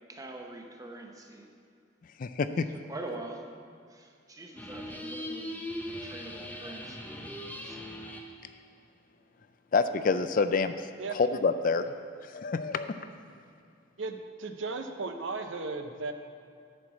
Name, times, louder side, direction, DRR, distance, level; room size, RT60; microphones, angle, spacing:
voice 1, 0.1-1.5 2.9-3.4 3.9-7.8, right 2 dB, 20° right, 1 dB, 0.9 m, -44 dB
voice 2, 2.2-2.7 9.7-10.7 11.2-11.8 12.3-12.9, left 4 dB, 45° left, 10 dB, 0.4 m, -27 dB
sound 1, 4.6-8.3, left 1 dB, 10° left, 0.7 m, -40 dB
voice 3, 14.0-16.1, right 3 dB, 85° right, 6 dB, 0.8 m, -36 dB
10.5 x 4.7 x 7.3 m, 2.4 s
head